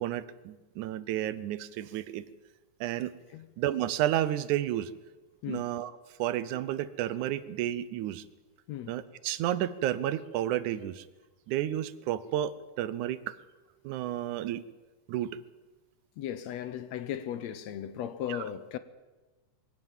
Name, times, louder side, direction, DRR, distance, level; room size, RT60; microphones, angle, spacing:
voice 1, 0.0-2.3 2.8-3.1 3.6-4.9 5.5-5.9 6.2-8.3 8.9-11.1 11.5-13.4 13.8-14.6 15.1-15.3 18.3-18.4, right 12 dB, 85° right, 2.2 m, -31 dB
voice 2, 8.7-9.0 16.2-18.8, left 10 dB, 70° left, 1.9 m, -36 dB
22.0 x 16.5 x 7.4 m
omnidirectional pair, 3.4 m